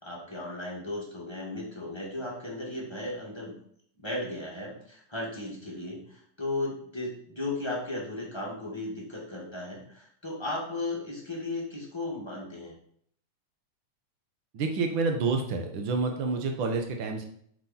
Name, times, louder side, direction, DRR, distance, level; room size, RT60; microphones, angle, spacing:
voice 1, 0.0-3.5 4.0-12.7, left 2 dB, 10° left, -4 dB, 1.8 m, -35 dB
voice 2, 14.5-17.3, right 4 dB, 55° right, 4 dB, 1.5 m, -28 dB
7.6 x 6.1 x 4.4 m, 0.65 s
omnidirectional pair, 3.5 m